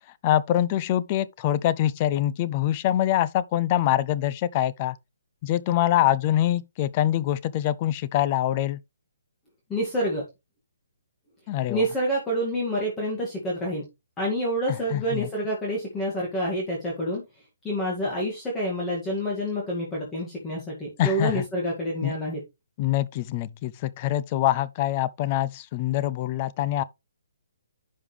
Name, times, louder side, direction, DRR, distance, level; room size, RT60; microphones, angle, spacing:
voice 1, 0.2-5.0 5.4-8.8 11.5-11.8 14.7-15.3 21.0-21.4 22.0-22.2 22.8-26.8, left 13 dB, 25° left, 0.4 m, -24 dB
voice 2, 9.7-10.2 11.7-13.8 14.2-17.2 17.6-22.4, equal, 10° left, 2.0 m, -28 dB
11.0 x 5.2 x 3.2 m
hypercardioid pair, 165°, 0 cm